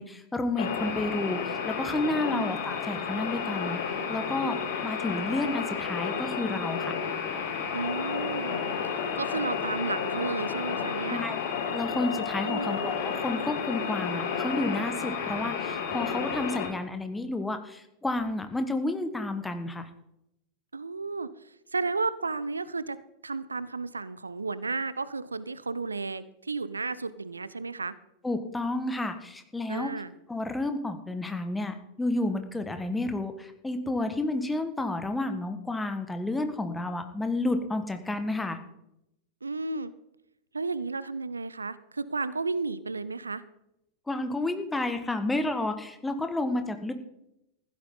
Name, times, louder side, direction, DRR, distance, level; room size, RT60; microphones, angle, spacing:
voice 1, 0.0-3.8 4.1-7.0 11.1-11.4 11.7-19.9 28.2-29.9 30.3-38.6 44.1-46.9, left 2 dB, 10° left, 7 dB, 1.6 m, -31 dB
sound 1, 0.6-16.7, left 6 dB, 55° left, 2.7 m, -32 dB
voice 2, 7.7-8.8 9.2-11.2 12.4-12.8 20.7-23.0 23.2-27.9 29.7-30.1 39.4-39.9 40.5-43.4, right 4 dB, 80° right, 17 dB, 0.6 m, -33 dB
15.5 x 12.0 x 3.9 m, 0.81 s
figure-of-eight pair, 90°, 0 cm